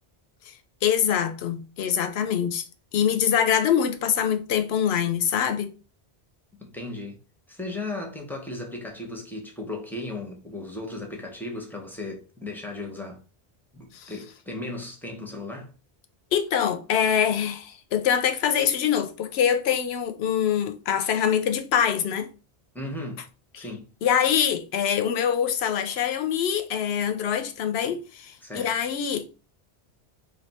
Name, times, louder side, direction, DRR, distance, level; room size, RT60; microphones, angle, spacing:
voice 1, 0.8-2.6 2.9-5.7 13.9-14.1 16.3-22.3 23.6-23.7 24.0-29.2, left 8 dB, 80° left, 0.9 m, -24 dB
voice 2, 6.6-7.2 7.5-13.2 13.7-15.7 22.7-23.2 23.6-23.8 28.4-28.7, left 2 dB, ahead, 0.8 m, -36 dB
3.4 x 2.6 x 4.1 m
omnidirectional pair, 1.1 m